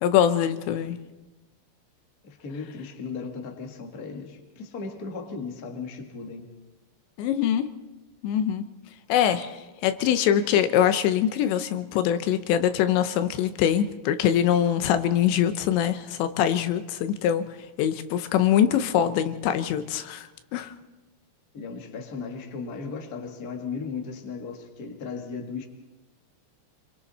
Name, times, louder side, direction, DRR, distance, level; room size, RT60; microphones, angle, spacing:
voice 1, 0.0-1.0 7.2-7.7 8.2-8.6 9.1-17.5 17.8-20.7, left 10 dB, 80° left, 10 dB, 3.1 m, -23 dB
voice 2, 2.2-6.4 21.5-25.6, left 5 dB, 50° left, 2 dB, 1.1 m, -36 dB
27.0 x 24.0 x 4.2 m, 1.1 s
omnidirectional pair, 5.3 m